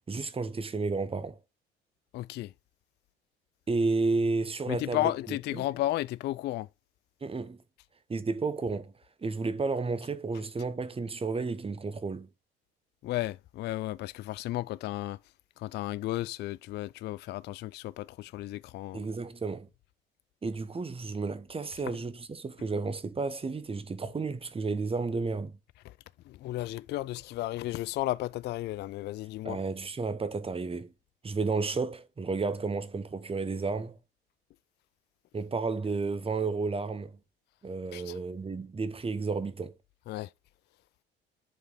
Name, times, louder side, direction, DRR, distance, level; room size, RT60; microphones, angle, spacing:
voice 1, 0.1-1.4 3.7-5.7 7.2-7.6 8.1-8.9 9.2-12.3 18.9-19.7 20.4-25.6 29.4-30.9 31.2-34.0 35.3-37.2 37.6-39.7, right 4 dB, 20° right, 0.9 m, -32 dB
voice 2, 2.1-2.5 4.7-6.7 13.0-15.2 15.6-19.0 25.8-25.9 26.3-29.6 37.9-38.2 40.1-40.3, left 15 dB, 35° left, 0.4 m, -33 dB
8.0 x 4.7 x 3.8 m
figure-of-eight pair, 55°, 30 cm